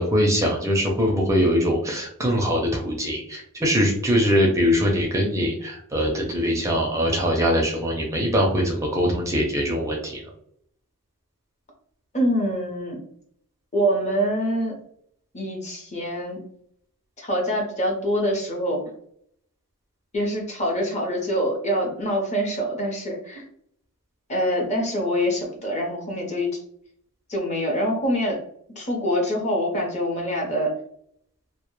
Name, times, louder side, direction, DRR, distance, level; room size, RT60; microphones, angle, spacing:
voice 1, 0.0-10.2, equal, 15° right, -1 dB, 0.4 m, -22 dB
voice 2, 12.1-13.0 13.7-14.7 15.3-16.4 17.2-18.8 20.1-23.4 24.3-26.5 27.3-28.4 28.8-30.7, equal, 30° left, 0 dB, 0.7 m, -25 dB
2.1 x 2.1 x 3.0 m, 0.66 s
head